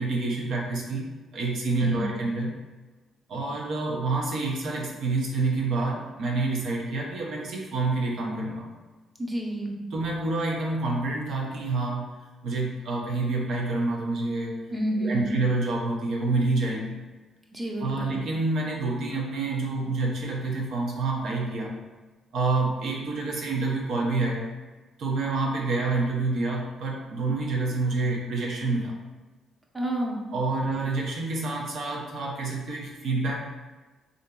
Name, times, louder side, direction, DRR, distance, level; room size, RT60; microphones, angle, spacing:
voice 1, 0.0-2.5 3.3-8.7 9.9-12.1 12.4-14.6 15.0-17.0 17.8-21.8 22.3-24.5 25.0-28.9 30.3-33.3, right 3 dB, 70° right, -1 dB, 0.7 m, -28 dB
voice 2, 9.2-9.8 14.7-15.4 17.5-18.2 29.7-30.2, right 1 dB, 20° right, -1 dB, 0.7 m, -29 dB
3.7 x 2.6 x 2.2 m, 1.2 s
cardioid pair, 90°, 0 cm